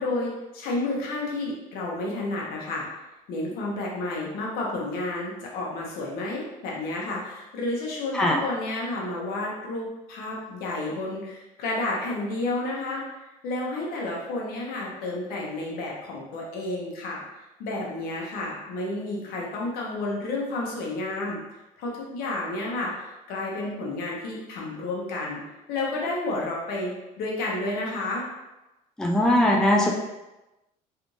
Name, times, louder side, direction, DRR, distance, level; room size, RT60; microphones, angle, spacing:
voice 1, 0.0-2.9 3.3-21.4 21.8-25.4 25.7-28.3, left 2 dB, 75° left, -3 dB, 1.0 m, -31 dB
voice 2, 29.0-29.9, left 1 dB, 5° left, 0 dB, 0.4 m, -20 dB
3.3 x 2.6 x 3.1 m, 1.0 s
cardioid pair, 115°, 16 cm